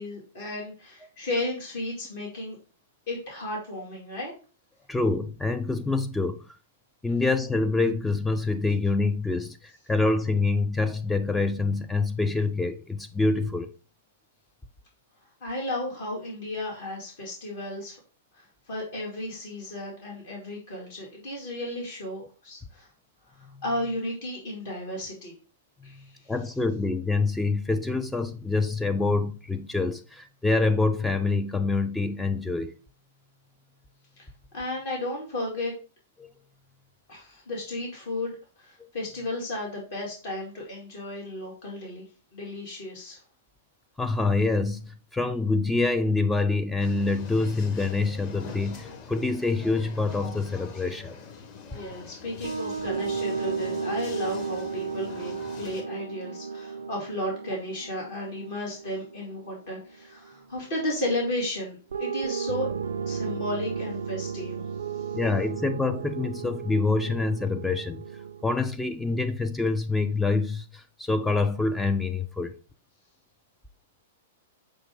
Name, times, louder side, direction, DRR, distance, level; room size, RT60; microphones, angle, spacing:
voice 1, 0.0-2.6 3.1-4.3 15.4-18.0 18.3-22.9 23.3-25.3 25.8-26.2 34.5-35.7 37.1-38.3 38.6-42.0 42.3-43.2 51.7-62.7 63.0-64.6 64.9-65.2, left 1 dB, 55° left, 1.8 m, -34 dB
voice 2, 4.9-6.4 7.0-13.7 25.8-25.9 26.3-32.7 36.2-36.3 44.0-51.1 65.1-68.0 68.4-72.5, left 3 dB, 5° left, 0.3 m, -26 dB
sound 1, 46.8-55.8, left 5 dB, 35° left, 1.3 m, -44 dB
sound 2, 52.4-60.5 61.9-68.6, right 6 dB, 70° right, 0.4 m, -34 dB
6.3 x 2.3 x 3.5 m
figure-of-eight pair, 105°, 0 cm